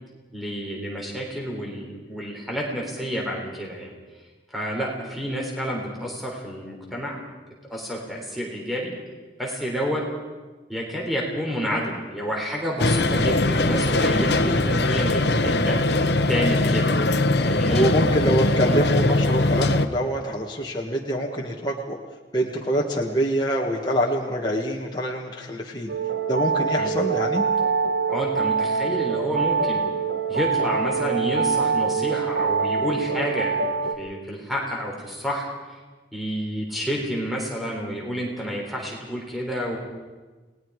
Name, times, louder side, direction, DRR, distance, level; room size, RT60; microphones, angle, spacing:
voice 1, 0.3-3.9 4.5-7.2 7.7-8.9 9.4-10.0 10.7-15.8 16.3-16.9 17.4-17.9 18.6-18.8 26.8-26.9 28.1-29.8 30.3-33.6 34.0-35.8 36.1-39.8, equal, ahead, -2 dB, 3.7 m, -29 dB
sound 1, 12.8-19.9, left 2 dB, 70° left, 1.0 m, -21 dB
voice 2, 17.7-22.0 22.3-25.9 26.3-27.5, equal, 25° left, -2 dB, 1.7 m, -25 dB
sound 2, 25.9-33.9, right 5 dB, 75° right, 1.5 m, -24 dB
29.5 x 20.0 x 4.9 m, 1.3 s
head